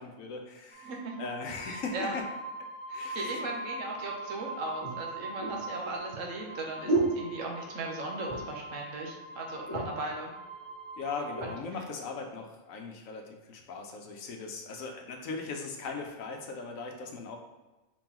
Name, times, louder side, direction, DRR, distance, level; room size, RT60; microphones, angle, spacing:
voice 1, 0.0-0.9 1.2-2.2 2.9-3.4 11.0-17.4, left 4 dB, 75° left, 2 dB, 1.0 m, -39 dB
sound 1, 0.7-11.6, right 2 dB, 50° right, 0.7 m, -42 dB
voice 2, 0.8-1.2 1.7-2.1 2.9-10.3 11.4-11.5, right 2 dB, 65° right, 0 dB, 1.2 m, -38 dB
sound 2, 3.8-3.9 4.8-7.9 8.2-8.7 9.0-9.1 9.4-10.1 10.8-11.6 12.2-12.4, right 2 dB, 55° left, 1.5 m, -33 dB
4.6 x 3.8 x 2.9 m, 1.1 s
omnidirectional pair, 1.5 m